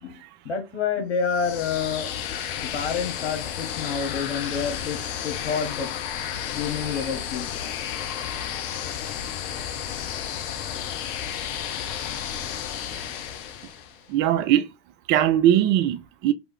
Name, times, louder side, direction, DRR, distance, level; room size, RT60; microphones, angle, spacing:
voice 1, 0.0-2.1 2.5-7.5, left 6 dB, 80° left, 1.3 m, -29 dB
sound 1, 1.2-14.0, left 9 dB, 55° left, 0.8 m, -32 dB
voice 2, 14.1-14.7 15.1-16.3, right 11 dB, 35° right, 0.4 m, -20 dB
3.2 x 2.5 x 3.4 m
hypercardioid pair, 95°, 33 cm